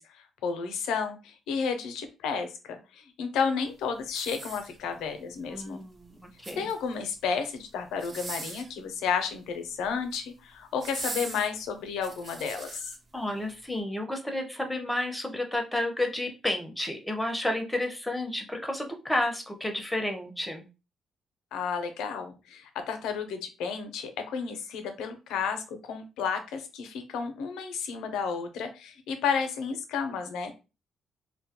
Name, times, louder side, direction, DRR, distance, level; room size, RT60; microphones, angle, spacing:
voice 1, 0.0-5.8 6.6-12.9 21.5-30.5, left 6 dB, 90° left, 7 dB, 0.5 m, -32 dB
sound 1, 4.1-5.1 6.2-7.0 7.9-8.8 9.8-10.3 10.8-13.0 13.6-13.7, right 2 dB, 40° right, 0.6 m, -40 dB
voice 2, 5.5-6.7 13.1-20.7, left 1 dB, 5° left, 4 dB, 0.6 m, -31 dB
2.2 x 2.0 x 2.8 m, 0.30 s
cardioid pair, 90°, 0 cm